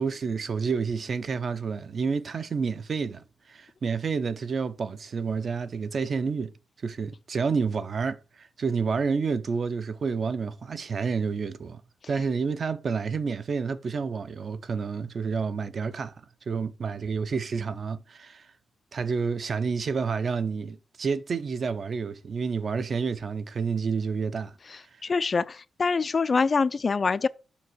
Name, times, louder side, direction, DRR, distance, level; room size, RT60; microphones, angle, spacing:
voice 1, 0.0-6.5 6.8-11.8 12.1-18.5 18.9-24.5 24.9-25.0, right 5 dB, 40° right, 0.6 m, -29 dB
voice 2, 25.0-27.3, left 4 dB, 30° left, 0.4 m, -24 dB
7.1 x 6.0 x 6.1 m
wide cardioid pair, 165°, 0 cm